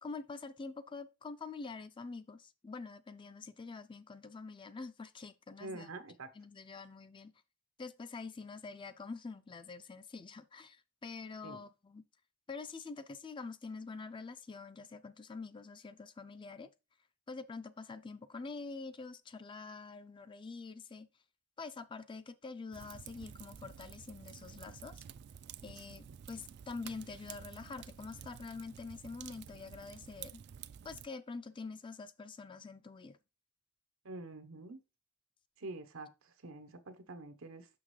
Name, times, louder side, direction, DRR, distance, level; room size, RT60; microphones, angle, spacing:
voice 1, 0.0-5.9 6.4-7.3 7.8-12.0 12.5-16.7 17.3-21.1 21.6-25.0 25.6-30.4 30.8-33.2, left 4 dB, 25° left, 0.4 m, -46 dB
voice 2, 5.6-6.3 11.4-11.6 34.0-34.8 35.6-37.7, right 2 dB, 85° right, 1.0 m, -46 dB
Fire, 22.7-31.1, right 8 dB, 55° right, 0.3 m, -51 dB
6.1 x 6.0 x 3.2 m
head